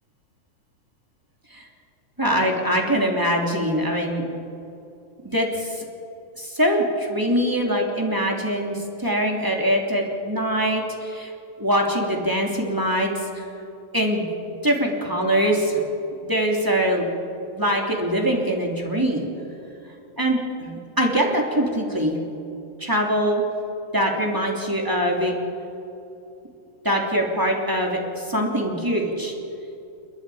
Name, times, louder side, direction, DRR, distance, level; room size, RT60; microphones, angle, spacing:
voice 1, 2.2-4.3 5.3-5.8 6.4-11.3 11.6-13.4 13.9-14.2 14.6-15.8 16.2-17.0 17.5-19.3 20.2-22.3 22.8-23.4 23.9-25.3 26.8-29.3, equal, 5° right, 0 dB, 2.3 m, -23 dB
29.0 x 22.0 x 5.0 m, 2.7 s
omnidirectional pair, 4.2 m